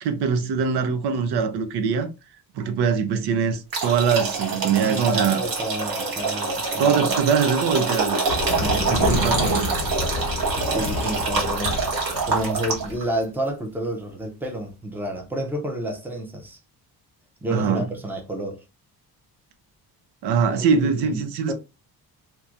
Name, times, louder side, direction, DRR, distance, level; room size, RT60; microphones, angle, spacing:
voice 1, 0.0-2.1 2.5-5.4 6.8-8.2 8.7-9.7 17.5-17.9 20.2-21.5, right 6 dB, 90° right, 0.6 m, -22 dB
sound 1, 3.7-13.0, right 4 dB, 65° right, 1.2 m, -25 dB
voice 2, 4.8-6.8 8.6-9.4 10.7-16.6 17.4-18.6 20.5-21.5, right 1 dB, 5° right, 0.5 m, -30 dB
sound 2, 8.3-13.1, left 3 dB, 60° left, 0.6 m, -29 dB
2.9 x 2.2 x 2.4 m
cardioid pair, 155°, 38 cm